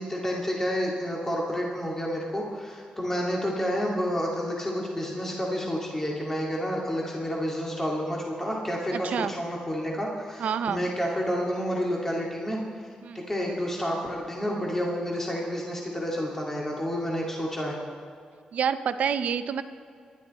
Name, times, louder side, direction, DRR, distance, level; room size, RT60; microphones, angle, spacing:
voice 1, 0.0-12.6 13.1-17.8, equal, 15° left, -3 dB, 2.3 m, -29 dB
voice 2, 8.9-9.3 10.4-10.8 13.0-13.3 18.5-19.6, right 7 dB, 75° right, 11 dB, 0.7 m, -28 dB
26.0 x 11.5 x 4.3 m, 2.2 s
cardioid pair, 110°, 2 cm